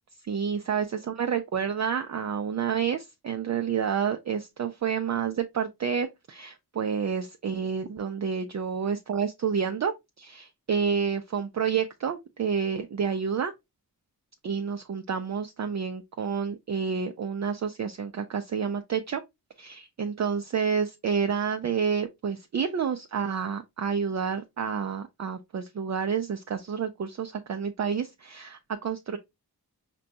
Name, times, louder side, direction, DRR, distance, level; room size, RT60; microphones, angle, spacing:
voice 1, 0.3-13.5 14.4-19.2 19.6-29.2, right 6 dB, 45° right, 0.4 m, -29 dB
5.0 x 2.2 x 2.7 m
wide cardioid pair, 65°, 39 cm